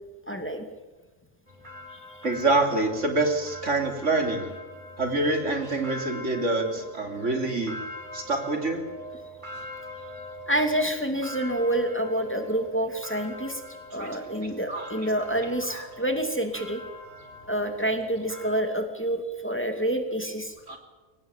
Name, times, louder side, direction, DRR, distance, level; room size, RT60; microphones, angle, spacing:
voice 1, 0.3-0.7 1.9-2.2 10.5-13.6 13.9-16.8 17.5-20.5, right 1 dB, 10° left, 5 dB, 2.5 m, -28 dB
sound 1, 1.5-18.6, left 1 dB, 40° right, 4.0 m, -42 dB
voice 2, 2.2-4.5 5.0-7.7 8.1-8.8 14.0-14.1 14.7-14.8 15.7-15.9 20.7-20.8, right 2 dB, 80° right, 4 dB, 3.6 m, -26 dB
24.0 x 18.5 x 9.1 m, 1.2 s
omnidirectional pair, 1.2 m